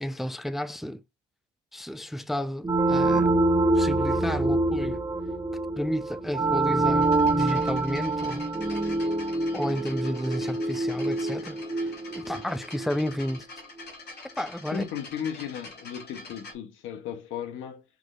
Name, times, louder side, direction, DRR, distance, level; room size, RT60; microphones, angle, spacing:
voice 1, 0.0-1.0 1.7-3.4 3.7-5.0 5.8-8.5 9.5-13.5 14.4-14.8, equal, ahead, 0.4 m, -32 dB
sound 1, 2.6-13.1, right 2 dB, 20° right, 1.0 m, -26 dB
sound 2, 7.0-16.5, left 3 dB, 55° left, 2.5 m, -45 dB
voice 2, 14.7-17.8, left 8 dB, 85° left, 0.9 m, -35 dB
6.1 x 3.2 x 2.5 m
cardioid pair, 90°, 20 cm